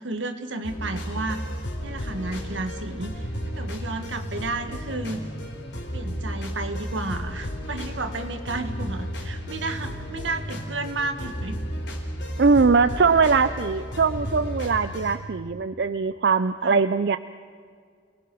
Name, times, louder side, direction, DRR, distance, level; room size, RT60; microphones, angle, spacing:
voice 1, 0.0-1.4 1.8-3.2 3.6-5.2 5.9-11.6 16.6-16.8, right 2 dB, 85° right, 7 dB, 1.8 m, -32 dB
sound 1, 0.6-15.1, equal, 70° left, 4.0 m, -33 dB
voice 2, 12.4-17.2, right 4 dB, 60° right, 12 dB, 0.5 m, -21 dB
29.0 x 19.0 x 6.2 m, 2.1 s
head